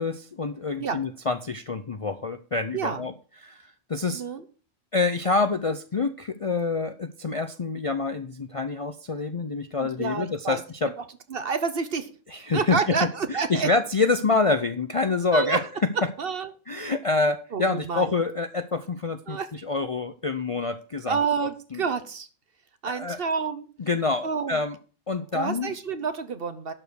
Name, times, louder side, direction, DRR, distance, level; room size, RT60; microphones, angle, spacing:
voice 1, 0.0-3.1 3.4-4.2 4.9-10.9 12.3-13.0 13.3-15.7 16.7-21.2 21.7-21.8 23.0-23.2 23.9-24.8 25.1-25.7, left 3 dB, 40° left, 10 dB, 0.5 m, -27 dB
voice 2, 2.7-3.1 4.1-4.4 9.8-10.6 11.3-12.1 12.5-13.7 15.3-15.6 16.2-16.5 17.5-18.1 19.3-19.5 21.1-22.3 22.8-23.7 24.2-24.6 25.3-26.7, right 5 dB, 55° right, 11 dB, 1.2 m, -28 dB
12.0 x 5.0 x 6.4 m, 0.39 s
omnidirectional pair, 1.2 m